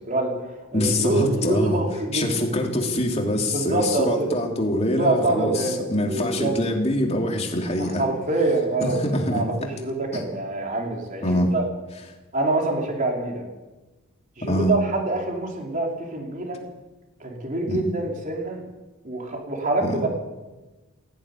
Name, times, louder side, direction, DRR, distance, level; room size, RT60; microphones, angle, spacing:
voice 1, 0.1-2.4 3.5-4.3 5.0-6.5 7.8-11.6 12.3-13.5 14.4-16.6 17.2-18.6 19.0-20.1, right 2 dB, 35° right, 0 dB, 4.3 m, -26 dB
voice 2, 0.7-1.8 2.1-8.0 8.8-9.4 10.1-10.2 11.2-11.5 14.4-14.7 17.7-17.8 19.8-20.0, left 1 dB, 30° left, 2 dB, 3.0 m, -24 dB
17.0 x 16.0 x 9.9 m, 1.1 s
head